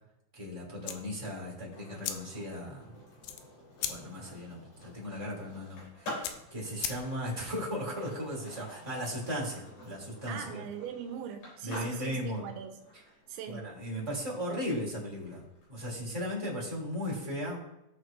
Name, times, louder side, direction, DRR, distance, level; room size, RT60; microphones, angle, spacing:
voice 1, 0.3-3.0 3.9-10.6 11.6-12.4 13.5-15.4 15.7-17.6, equal, 10° right, -5 dB, 1.8 m, -37 dB
sound 1, 0.8-7.4, left 10 dB, 85° left, 3.1 m, -42 dB
Skateboard, 0.8-16.6, left 1 dB, 60° left, 5.5 m, -49 dB
voice 2, 10.3-12.8 13.3-13.7, right 8 dB, 80° right, 4 dB, 3.3 m, -41 dB
16.0 x 6.4 x 2.6 m, 0.84 s
omnidirectional pair, 5.3 m